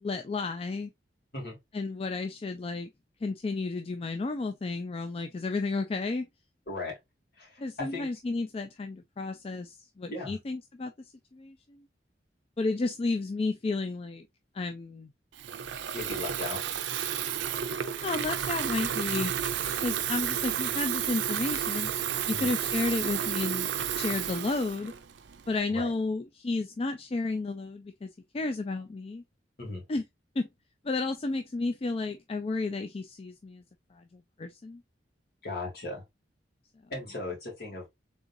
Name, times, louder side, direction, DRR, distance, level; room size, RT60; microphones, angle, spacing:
voice 1, 0.0-0.9 1.7-2.9 3.2-6.3 7.6-11.8 12.6-14.3 14.5-15.1 17.7-19.3 19.8-21.9 22.3-24.9 25.5-29.2 29.9-30.0 30.4-30.5 30.8-33.6 33.9-34.8, left 3 dB, 35° left, 0.4 m, -32 dB
voice 2, 6.7-7.0 7.3-8.1 10.1-10.4 15.9-16.6 22.3-22.5 25.7-25.9 29.6-29.9 35.4-36.0 36.9-37.9, left 2 dB, 60° left, 2.5 m, -37 dB
Water tap faucet / Fill (with liquid), 15.3-25.6, right 9 dB, 80° right, 0.5 m, -32 dB
3.9 x 3.6 x 2.6 m
head